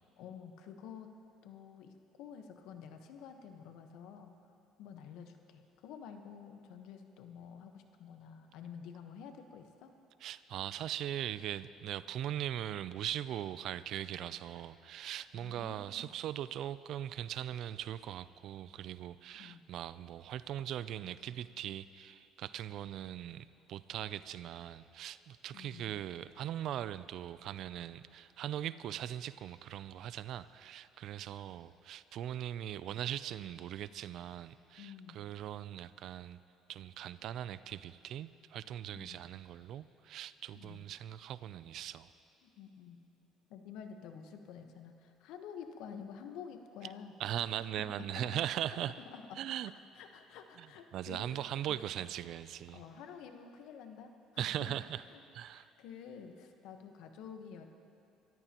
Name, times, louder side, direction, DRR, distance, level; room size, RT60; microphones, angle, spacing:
voice 1, 0.2-1.1 1.4-1.9 2.2-4.3 4.8-9.9 15.3-16.2 19.4-19.6 25.5-26.0 34.8-35.2 38.9-39.2 40.5-40.8 42.4-43.0 43.5-47.7 48.1-48.4 48.7-48.8 49.1-49.7 50.0-51.8 52.7-54.8 55.1-55.2 55.5-57.6, left 7 dB, 75° left, 6 dB, 1.1 m, -50 dB
voice 2, 10.2-36.4 36.7-42.1 47.2-48.9 49.4-49.7 50.6-50.7 50.9-52.8 54.4-55.0 55.3-55.7, right 11 dB, 60° right, 16 dB, 0.4 m, -40 dB
24.0 x 14.0 x 3.0 m, 2.7 s
cardioid pair, 110°, 0 cm